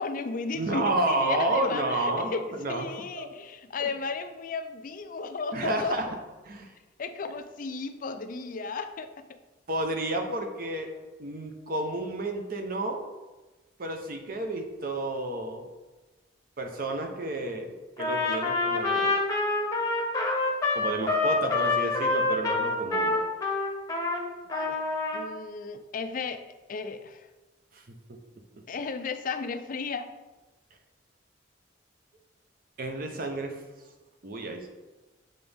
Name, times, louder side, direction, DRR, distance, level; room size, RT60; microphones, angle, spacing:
voice 1, 0.0-6.0 7.0-9.4 24.5-24.8 25.1-27.3 28.7-30.1, left 4 dB, 45° left, 9 dB, 0.4 m, -34 dB
voice 2, 0.5-2.3 2.6-2.9 3.2-3.3 3.8-3.9 5.5-6.1 6.4-6.7 9.7-10.9 11.2-13.0 13.8-15.7 16.6-17.7 18.0-19.2 20.7-23.2 27.7-27.8 32.8-33.6 34.2-34.7, right 2 dB, 50° right, 4 dB, 0.8 m, -30 dB
Trumpet, 18.0-24.2 24.5-25.3, left 3 dB, 20° left, 0.8 m, -26 dB
7.7 x 4.0 x 3.5 m, 1.2 s
head